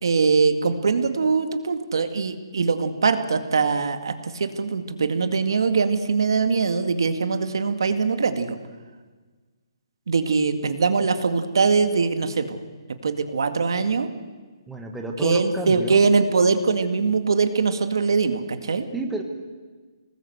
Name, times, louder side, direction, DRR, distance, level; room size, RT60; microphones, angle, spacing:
voice 1, 0.0-8.6 10.1-12.6 13.0-14.1 15.2-18.8, right 4 dB, 60° right, 9 dB, 2.1 m, -22 dB
voice 2, 14.7-16.0 18.9-19.2, right 2 dB, 5° right, 2 dB, 1.4 m, -29 dB
25.0 x 19.5 x 8.0 m, 1.4 s
hypercardioid pair, 175°, 3 cm